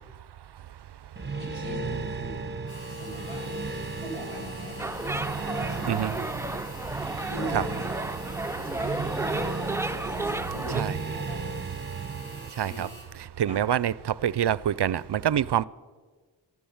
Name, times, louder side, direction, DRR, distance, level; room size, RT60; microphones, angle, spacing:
sound 1, 1.2-12.5, right 3 dB, 20° right, 1.1 m, -35 dB
voice 1, 1.4-2.5 2.9-3.5 4.0-5.0 5.7-6.2 7.2-7.8 8.5-9.6 10.0-11.6 12.5-12.9 13.5-13.6, equal, 70° left, -1 dB, 7.0 m, -40 dB
sound 2, 2.7-13.0, equal, 40° left, 6.9 m, -47 dB
sound 3, 4.8-10.8, right 2 dB, 5° right, 0.4 m, -33 dB
voice 2, 12.6-12.9 13.4-13.9 14.2-15.7, right 10 dB, 60° right, 21 dB, 0.5 m, -25 dB
14.5 x 13.5 x 7.2 m, 1.4 s
cardioid pair, 50°, 48 cm